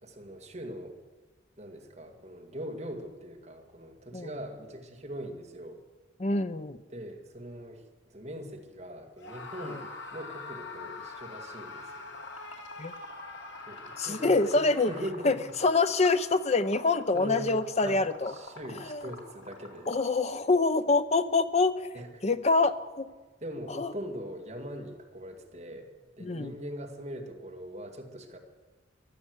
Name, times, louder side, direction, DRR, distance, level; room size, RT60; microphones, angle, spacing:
voice 1, 0.0-1.0 1.6-5.8 6.9-9.8 10.1-12.1 13.7-15.4 17.1-19.9 21.9-22.2 23.4-25.9 26.2-28.4, equal, 35° right, 2 dB, 2.1 m, -41 dB
voice 2, 6.2-6.8 9.6-9.8 12.8-12.9 14.0-14.9 15.2-15.4 15.6-18.3 18.8-19.1 19.9-21.9 22.2-23.1 23.8-23.9 26.2-26.5, left 3 dB, 35° left, 12 dB, 0.7 m, -26 dB
Screaming, 9.2-15.4, left 3 dB, 65° left, 2.0 m, -44 dB
Liquid, 12.1-20.1, left 2 dB, 85° left, 2.8 m, -47 dB
15.0 x 11.5 x 8.0 m, 1.3 s
head